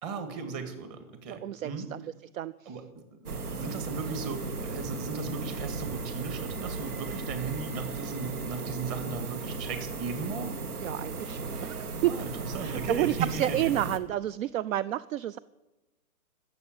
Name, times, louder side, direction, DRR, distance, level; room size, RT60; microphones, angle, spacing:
voice 1, 0.0-1.9 2.7-2.8 3.2-10.6 12.1-13.7, right 5 dB, 30° right, 7 dB, 2.1 m, -37 dB
voice 2, 1.3-2.0 2.3-2.7 10.8-12.1 12.6-15.4, right 13 dB, 65° right, 19 dB, 0.5 m, -30 dB
sound 1, 3.3-14.0, right 3 dB, 85° right, 1.5 m, -36 dB
13.5 x 7.5 x 9.1 m, 1.1 s
hypercardioid pair, 140°, 44 cm